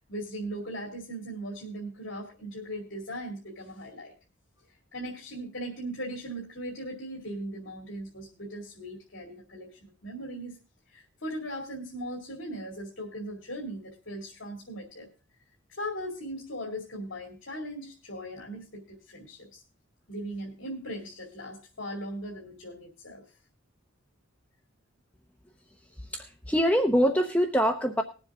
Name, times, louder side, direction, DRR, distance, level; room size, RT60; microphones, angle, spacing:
voice 1, 0.0-4.1 4.7-10.6 10.9-15.1 15.8-19.6 20.1-23.2, equal, 75° left, -1 dB, 2.6 m, -39 dB
voice 2, 26.0-28.0, equal, 10° left, 4 dB, 0.8 m, -24 dB
20.0 x 7.5 x 3.7 m, 0.33 s
head